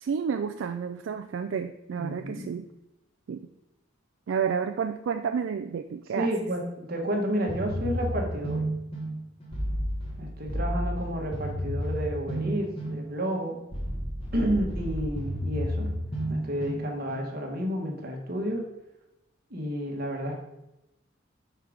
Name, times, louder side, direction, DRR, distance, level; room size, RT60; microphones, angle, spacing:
voice 1, 0.0-2.7 3.3-3.5 4.3-6.3, right 6 dB, 70° right, 7 dB, 0.3 m, -30 dB
voice 2, 2.0-2.5 6.1-8.6 10.2-13.6 14.3-15.9 16.3-18.6 19.5-20.4, equal, 50° right, 1 dB, 1.3 m, -31 dB
sound 1, 7.5-17.3, equal, 30° left, 1.4 m, -32 dB
5.7 x 4.5 x 4.9 m, 0.92 s
head